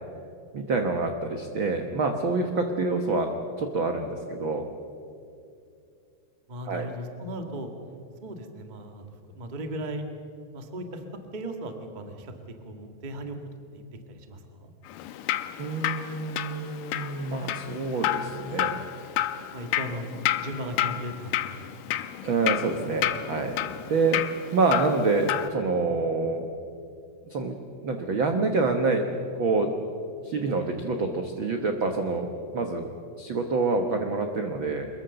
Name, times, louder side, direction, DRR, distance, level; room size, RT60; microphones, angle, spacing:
voice 1, 0.5-3.3 3.6-4.7 6.7-6.9 15.6-19.4 22.2-23.6 23.9-26.5 27.3-29.1 29.3-29.9 30.2-32.9 33.2-34.9, right 3 dB, 80° right, 5 dB, 1.1 m, -27 dB
voice 2, 6.5-7.7 8.2-10.0 10.5-11.0 11.3-12.3 12.6-13.4 13.7-14.7 19.5-20.1 20.3-21.8, right 1 dB, 40° right, 5 dB, 0.6 m, -37 dB
Drip, 14.9-25.5, left 13 dB, 75° left, 2.3 m, -31 dB
24.5 x 22.0 x 6.9 m, 2.5 s
omnidirectional pair, 4.3 m